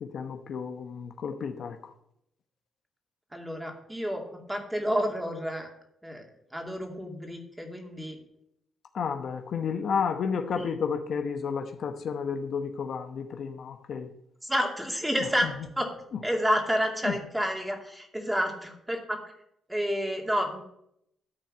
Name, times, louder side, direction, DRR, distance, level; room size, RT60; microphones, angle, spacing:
voice 1, 0.0-1.8 8.9-14.1 17.0-17.1, left 6 dB, 60° left, 7 dB, 1.0 m, -31 dB
voice 2, 3.3-5.7 6.0-6.2 6.5-8.2 10.6-10.7 14.4-15.9 16.2-19.2 19.7-20.6, equal, 5° right, 2 dB, 2.4 m, -30 dB
13.0 x 4.4 x 7.5 m, 0.75 s
cardioid pair, 90°, 0 cm